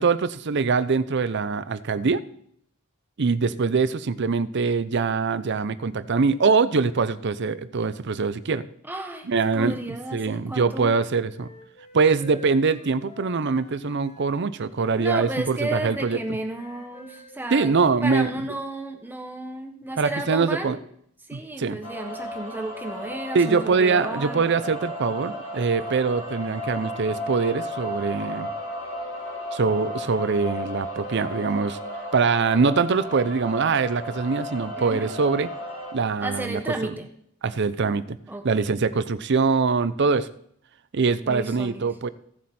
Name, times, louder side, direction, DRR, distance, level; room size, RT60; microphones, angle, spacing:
voice 1, 0.0-2.2 3.2-8.7 9.2-11.5 11.9-16.2 17.5-18.5 20.0-20.8 21.3-21.8 23.3-28.5 29.5-31.8 32.1-35.5 35.9-36.9 37.4-38.2 38.4-40.3 40.9-42.1, right 4 dB, 60° right, 15 dB, 0.6 m, -23 dB
voice 2, 8.9-9.3 9.5-10.9 15.0-17.7 18.0-20.8 21.3-24.6 34.7-35.1 36.2-37.1 38.3-38.7 41.2-41.9, right 1 dB, 10° right, 4 dB, 1.4 m, -33 dB
Wind instrument woodwind instrument, 11.3-14.5 14.8-18.2, left 1 dB, 35° left, 3.5 m, -50 dB
sound 1, 21.8-35.9, equal, 85° left, 2.5 m, -34 dB
15.5 x 7.6 x 4.3 m, 0.68 s
head